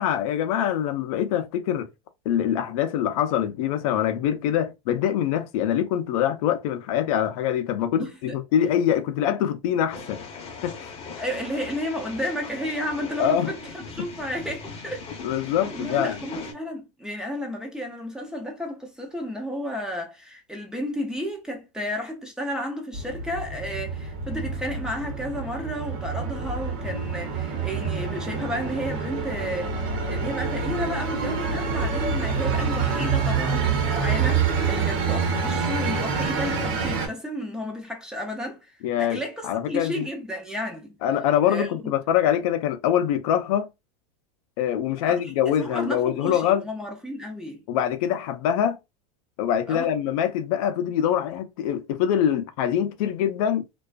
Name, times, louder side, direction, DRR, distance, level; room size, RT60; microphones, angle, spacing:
voice 1, 0.0-1.9 2.3-10.2 10.6-10.9 13.2-13.5 15.2-16.2 38.8-40.1 41.0-43.7 44.6-46.6 47.7-48.8 49.4-53.6, left 10 dB, 65° left, 0.5 m, -24 dB
voice 2, 8.0-8.4 11.2-15.1 15.4-41.0 41.5-41.9 45.0-47.6 49.7-49.9, equal, 5° right, 0.5 m, -32 dB
sound 1, 9.9-16.5, left 4 dB, 30° left, 0.7 m, -39 dB
sound 2, 22.9-37.1, right 5 dB, 60° right, 1.0 m, -27 dB
2.4 x 2.3 x 2.3 m
supercardioid pair, 125°, 19 cm